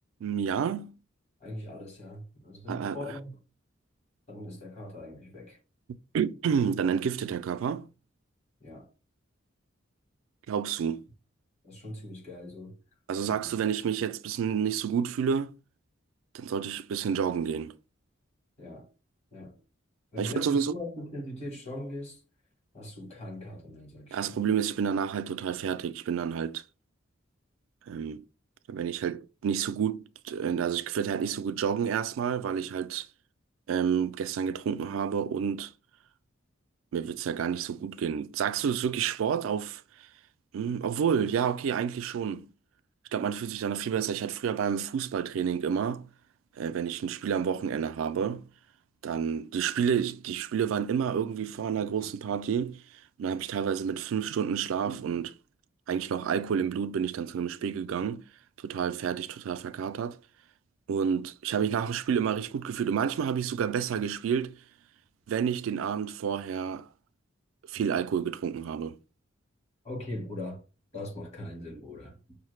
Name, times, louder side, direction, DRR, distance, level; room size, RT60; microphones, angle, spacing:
voice 1, 0.2-0.9 2.7-3.0 6.1-7.9 10.5-11.0 13.1-15.5 16.3-17.7 20.2-20.7 24.1-26.6 27.9-28.2 28.7-33.1 33.7-35.7 36.9-39.8 40.5-42.5 43.1-46.1 46.6-48.5 49.0-52.8 53.2-55.4 55.9-58.2 58.6-60.2 60.9-64.6 65.3-66.9 67.7-69.0, right 7 dB, 90° right, 0.3 m, -29 dB
voice 2, 1.4-3.3 4.3-5.6 8.6-8.9 11.6-12.8 13.2-13.5 18.6-18.9 19.3-19.6 20.1-22.2 22.7-24.4 69.8-70.6 70.9-72.4, left 1 dB, 35° left, 1.4 m, -40 dB
5.5 x 2.1 x 3.1 m
head